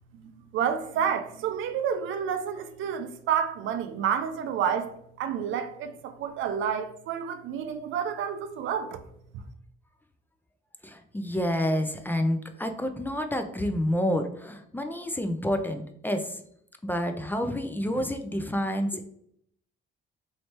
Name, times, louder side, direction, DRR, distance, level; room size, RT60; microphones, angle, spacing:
voice 1, 0.5-9.0, right 8 dB, 80° right, 0.5 m, -29 dB
voice 2, 10.8-16.4 16.8-19.1, equal, 10° left, 0.4 m, -29 dB
3.2 x 3.1 x 2.8 m
cardioid pair, 90°, 20 cm